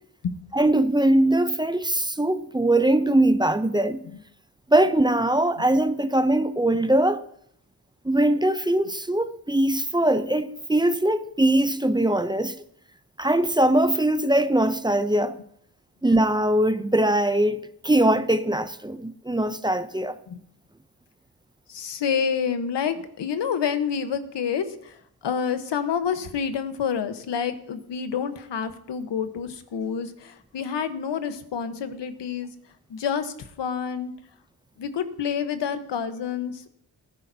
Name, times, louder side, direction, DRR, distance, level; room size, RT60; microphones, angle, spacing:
voice 1, 0.5-4.0 4.7-7.2 8.0-12.6 13.2-15.4 16.0-20.2, right 1 dB, 10° right, 0.4 m, -21 dB
voice 2, 21.7-32.5 32.9-34.1 34.8-36.7, left 7 dB, 80° left, 1.1 m, -28 dB
18.5 x 10.5 x 2.7 m
wide cardioid pair, 135°, 42 cm